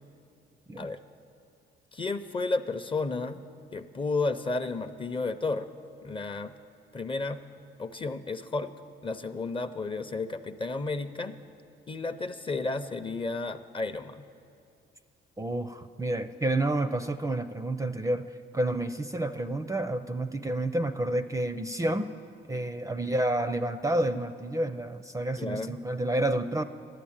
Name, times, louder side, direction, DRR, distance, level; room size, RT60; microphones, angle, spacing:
voice 1, 1.9-3.4 3.7-5.7 6.0-6.5 6.9-7.4 7.8-8.7 9.0-11.4 11.9-14.2 25.4-25.8, left 3 dB, 25° left, 10 dB, 0.6 m, -32 dB
voice 2, 15.4-18.3 18.5-22.1 22.5-26.6, right 1 dB, 15° right, 10 dB, 0.4 m, -29 dB
12.0 x 11.0 x 8.7 m, 2.4 s
cardioid pair, 90°, 20 cm